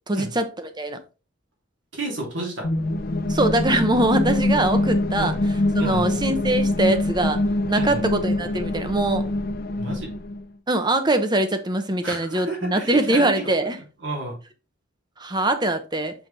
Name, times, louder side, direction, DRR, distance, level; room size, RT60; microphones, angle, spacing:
voice 1, 0.1-1.0 3.3-7.4 7.7-9.2 9.9-10.0 10.7-13.8 15.2-16.1, right 1 dB, 20° right, 0.9 m, -23 dB
voice 2, 1.9-2.7 5.2-5.4 5.8-6.1 7.7-8.0 9.8-10.1 12.0-13.5 14.0-14.3, right 2 dB, 65° right, 3.0 m, -31 dB
sound 1, 2.6-10.4, left 1 dB, 50° left, 0.7 m, -24 dB
5.8 x 5.7 x 3.3 m
head